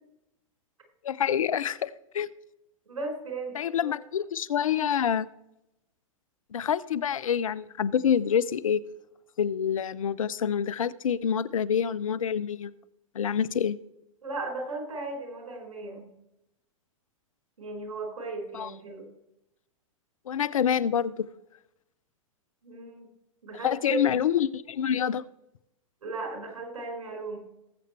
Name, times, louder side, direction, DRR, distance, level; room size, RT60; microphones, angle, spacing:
voice 1, 1.0-2.3 3.5-5.3 6.5-8.8 9.4-12.7 13.1-13.8 18.5-18.7 20.3-21.2 23.6-25.2, left 8 dB, 75° left, 17 dB, 0.6 m, -27 dB
voice 2, 2.9-3.9 14.2-16.1 17.6-19.1 22.6-23.1 23.4-24.0 26.0-27.4, right 3 dB, 75° right, 0 dB, 5.2 m, -36 dB
19.5 x 7.9 x 3.3 m, 0.86 s
hypercardioid pair, 105°, 17 cm